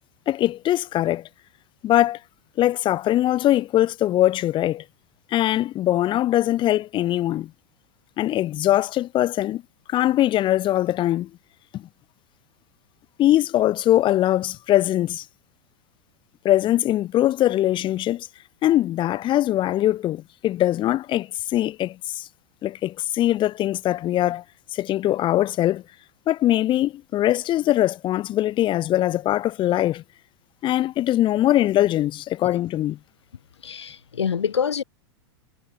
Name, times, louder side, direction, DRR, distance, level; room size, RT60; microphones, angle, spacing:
voice 1, 0.3-1.3 1.8-2.2 2.6-4.8 5.3-7.5 8.2-9.6 9.9-11.3 11.7-11.8 13.2-15.2 16.4-18.3 18.6-22.3 22.6-24.4 24.7-25.8 26.3-30.0 30.6-33.0, left 13 dB, 35° left, 5.0 m, -21 dB
voice 2, 33.6-34.8, left 7 dB, 90° left, 5.0 m, -26 dB
hypercardioid pair, 110°, 14 cm